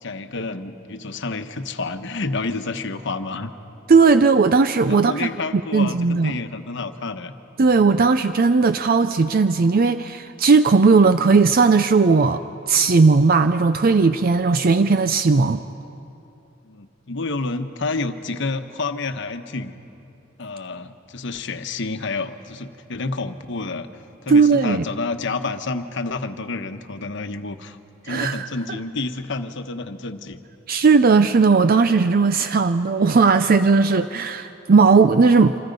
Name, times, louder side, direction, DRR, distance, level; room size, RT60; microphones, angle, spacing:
voice 1, 0.0-3.5 4.9-7.3 16.6-19.7 20.4-23.9 24.2-27.8 28.0-30.4, left 3 dB, 65° left, 8 dB, 1.1 m, -29 dB
voice 2, 3.9-5.3 5.7-6.4 7.6-15.6 24.3-24.8 28.1-28.5 30.7-35.6, right 4 dB, 45° right, 11 dB, 0.5 m, -17 dB
27.5 x 26.0 x 5.3 m, 2.8 s
head